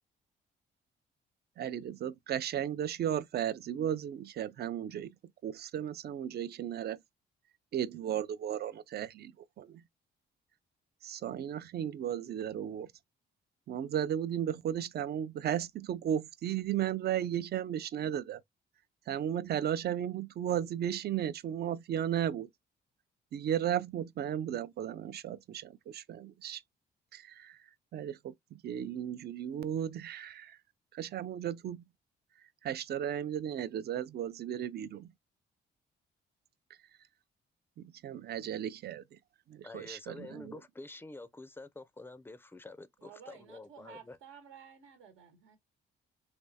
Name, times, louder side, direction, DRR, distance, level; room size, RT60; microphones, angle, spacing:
voice 1, 1.6-5.1 5.4-7.0 7.7-9.3 9.6-9.8 11.0-12.9 13.7-18.4 19.1-22.5 23.3-26.6 27.1-27.6 27.9-30.6 30.9-31.8 32.6-35.1 37.8-39.0 39.5-40.5, right 10 dB, 55° right, 0.5 m, -35 dB
voice 2, 39.6-44.2, left 2 dB, 10° left, 0.4 m, -48 dB
voice 3, 43.0-45.6, right 7 dB, 85° right, 1.1 m, -53 dB
3.4 x 3.1 x 2.7 m
cardioid pair, 90°, 20 cm